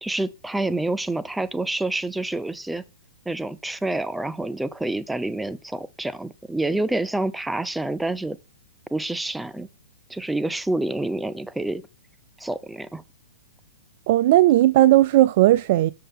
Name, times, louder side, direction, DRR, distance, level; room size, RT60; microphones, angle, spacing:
voice 1, 0.0-2.8 3.3-8.4 8.9-9.7 10.1-11.8 12.4-13.0, right 2 dB, 5° right, 0.5 m, -27 dB
voice 2, 14.1-15.9, right 15 dB, 50° right, 0.3 m, -16 dB
7.5 x 6.6 x 3.6 m
hypercardioid pair, 115°, 0 cm